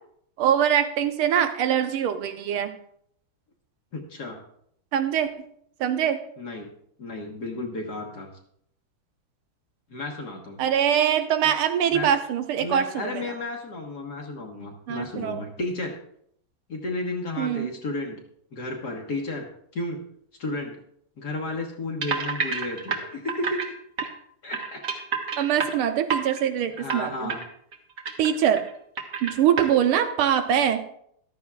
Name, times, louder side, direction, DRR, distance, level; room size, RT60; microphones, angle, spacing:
voice 1, 0.4-2.7 4.9-5.5 5.8-6.2 10.6-13.3 14.9-15.4 17.4-17.7 25.4-27.3 28.2-28.6 29.2-30.8, right 9 dB, 85° right, 8 dB, 1.7 m, -23 dB
voice 2, 3.9-4.4 6.4-6.7 7.0-8.3 9.9-10.6 11.9-12.1 12.6-15.9 16.7-18.1 18.5-19.5 19.7-20.0 20.4-20.8 21.2-23.6 24.4-24.8 26.8-27.4, left 2 dB, 50° left, 1 dB, 1.7 m, -32 dB
sound 1, 22.0-23.7 24.0-24.1 24.5-26.4 26.8-27.0 27.3-27.4 27.7-28.7 29.0-29.7, right 5 dB, 45° right, 1.5 m, -29 dB
14.0 x 12.0 x 2.4 m, 0.69 s
omnidirectional pair, 2.4 m